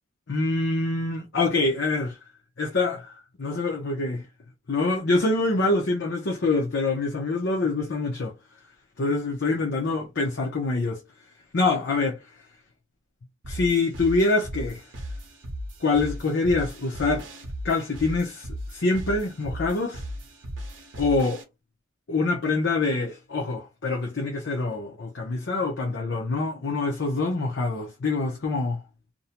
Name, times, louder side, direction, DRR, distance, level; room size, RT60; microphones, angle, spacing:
voice 1, 0.3-2.2 2.6-4.2 4.7-8.3 9.0-11.0 11.5-12.2 13.5-14.8 15.8-17.3 17.6-20.0 21.0-21.4 22.1-28.8, left 3 dB, 60° left, 0.6 m, -25 dB
sound 1, 13.4-21.4, equal, 65° right, 0.8 m, -37 dB
2.6 x 2.1 x 2.8 m
head